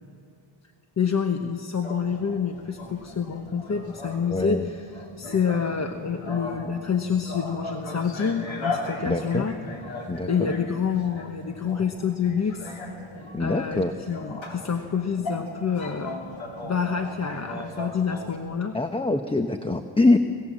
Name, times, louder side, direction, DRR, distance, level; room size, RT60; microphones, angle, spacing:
voice 1, 1.0-9.6 10.0-12.8 13.4-16.2 16.6-18.8, left 6 dB, 30° left, 6 dB, 1.1 m, -27 dB
sound 1, 1.8-18.4, left 2 dB, 65° left, 3.5 m, -37 dB
voice 2, 4.3-4.7 9.0-9.5 10.1-10.6 13.3-13.9 18.7-20.2, left 2 dB, 10° left, 7 dB, 0.8 m, -24 dB
25.5 x 17.5 x 7.4 m, 2.7 s
cardioid pair, 110°, 50 cm